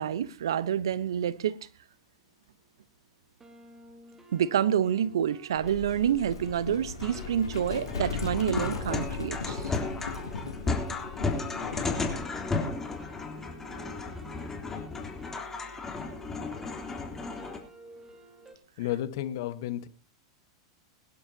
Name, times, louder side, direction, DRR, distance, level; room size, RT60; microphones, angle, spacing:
voice 1, 0.0-1.6 4.3-9.7, right 9 dB, 75° right, 0.9 m, -28 dB
sound 1, 2.2-2.3 2.5-2.9 3.4-18.5, right 2 dB, 15° right, 2.5 m, -51 dB
Livestock farm animals working animals, 5.5-12.2, left 5 dB, 85° left, 2.8 m, -37 dB
sound 2, 7.0-17.6, left 4 dB, 15° left, 3.3 m, -34 dB
voice 2, 18.8-19.9, left 12 dB, 60° left, 1.3 m, -32 dB
22.5 x 11.5 x 2.8 m
hypercardioid pair, 100°, 2 cm